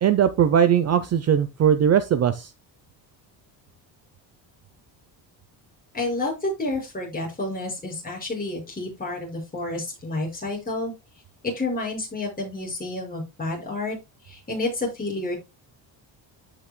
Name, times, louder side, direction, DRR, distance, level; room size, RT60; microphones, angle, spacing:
voice 1, 0.0-2.5, right 8 dB, 35° right, 0.6 m, -19 dB
voice 2, 5.9-10.9 11.4-14.0 14.2-15.3, left 2 dB, 20° left, 5.7 m, -29 dB
14.0 x 6.1 x 2.2 m
cardioid pair, 155°, 45 cm